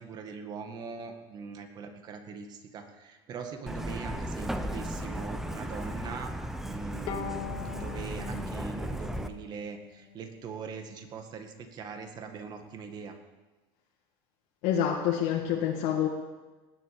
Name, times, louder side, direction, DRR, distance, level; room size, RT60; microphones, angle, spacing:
voice 1, 0.0-6.3 6.6-13.2, right 5 dB, 30° right, 5 dB, 1.9 m, -41 dB
Truck, 3.7-9.3, equal, 5° right, 0.7 m, -36 dB
Bowed string instrument, 7.1-10.4, left 8 dB, 35° left, 1.5 m, -42 dB
voice 2, 14.6-16.1, left 9 dB, 60° left, -1 dB, 1.9 m, -27 dB
19.5 x 8.2 x 8.7 m, 1.2 s
cardioid pair, 160°, 13 cm